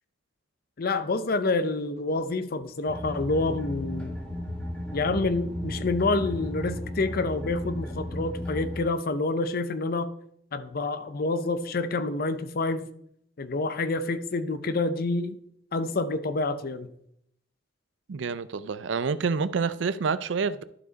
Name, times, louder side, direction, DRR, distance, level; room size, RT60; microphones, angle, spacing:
voice 1, 0.8-4.2 4.9-10.1 10.5-12.9 13.4-15.4 15.7-16.9, left 3 dB, 55° left, 12 dB, 0.6 m, -28 dB
sound 1, 2.9-8.8, left 1 dB, 5° left, 1.9 m, -34 dB
voice 2, 18.1-20.6, right 5 dB, 85° right, 15 dB, 0.5 m, -28 dB
11.5 x 5.0 x 4.0 m, 0.71 s
head